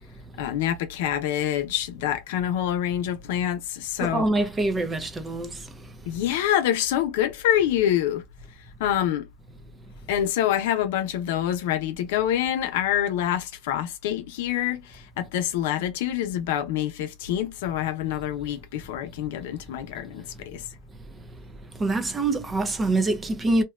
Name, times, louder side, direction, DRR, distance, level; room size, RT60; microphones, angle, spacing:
voice 1, 0.4-4.3 6.1-8.2 8.8-9.3 10.1-20.7, left 11 dB, 80° left, 0.6 m, -26 dB
voice 2, 4.0-5.7 21.7-23.6, right 2 dB, 15° right, 0.6 m, -25 dB
2.7 x 2.2 x 2.3 m
supercardioid pair, 145°, 0 cm